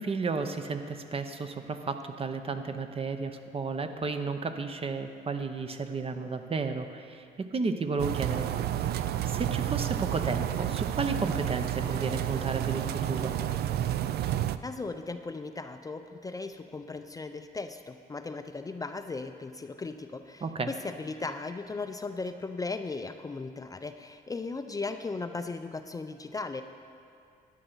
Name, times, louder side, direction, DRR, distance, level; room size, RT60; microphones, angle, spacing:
voice 1, 0.0-8.5 9.2-13.4 20.4-20.7, right 4 dB, 35° right, 7 dB, 0.7 m, -33 dB
sound 1, 8.0-14.6, right 11 dB, 70° right, 0.4 m, -30 dB
voice 2, 14.6-26.6, left 3 dB, 20° left, 7 dB, 0.4 m, -37 dB
12.0 x 9.9 x 3.9 m, 2.5 s
cardioid pair, 90°, 17 cm